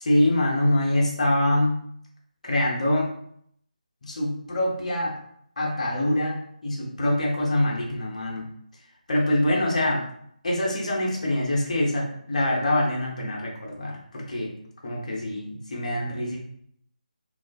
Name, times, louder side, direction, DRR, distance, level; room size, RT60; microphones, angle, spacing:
voice 1, 0.0-1.8 2.4-3.1 4.0-5.2 5.6-8.5 9.1-10.1 10.4-14.5 14.8-16.4, left 1 dB, 55° left, -2 dB, 0.8 m, -24 dB
2.4 x 2.3 x 2.3 m, 0.68 s
figure-of-eight pair, 155°, 5 cm